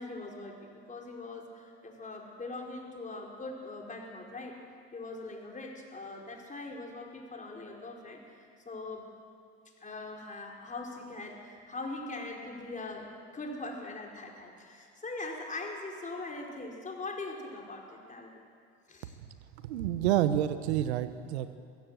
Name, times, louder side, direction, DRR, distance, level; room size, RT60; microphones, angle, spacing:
voice 1, 0.0-4.6 4.9-9.1 9.8-18.3 18.9-19.2, left 2 dB, 25° left, 0 dB, 5.1 m, -41 dB
voice 2, 19.6-21.6, right 11 dB, 80° right, 12 dB, 1.1 m, -28 dB
23.0 x 15.5 x 7.9 m, 2.2 s
hypercardioid pair, 80°, 33 cm